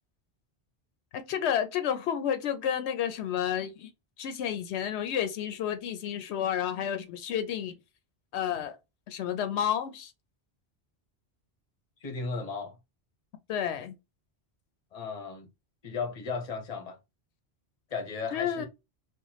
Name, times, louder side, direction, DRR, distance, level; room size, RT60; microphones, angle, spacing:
voice 1, 1.1-3.9 4.2-7.7 8.3-8.8 9.1-10.1 13.5-13.9 18.3-18.7, left 9 dB, 85° left, 0.8 m, -30 dB
voice 2, 12.0-12.8 14.9-15.5 15.8-17.0 17.9-18.7, left 4 dB, 40° left, 0.9 m, -35 dB
3.0 x 2.3 x 3.9 m
omnidirectional pair, 1.1 m